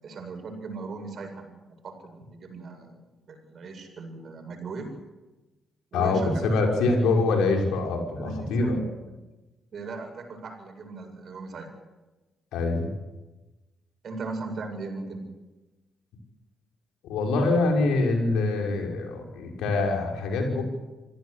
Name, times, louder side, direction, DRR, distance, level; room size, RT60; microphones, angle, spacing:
voice 1, 0.0-3.0 3.3-4.9 5.9-6.8 8.2-8.9 9.7-11.7 14.0-15.3, right 3 dB, 55° right, 4 dB, 7.8 m, -38 dB
voice 2, 5.9-8.8 12.5-12.9 17.1-20.6, left 3 dB, 70° left, 1 dB, 5.9 m, -24 dB
27.0 x 17.5 x 8.4 m, 1.1 s
hypercardioid pair, 45°, 0 cm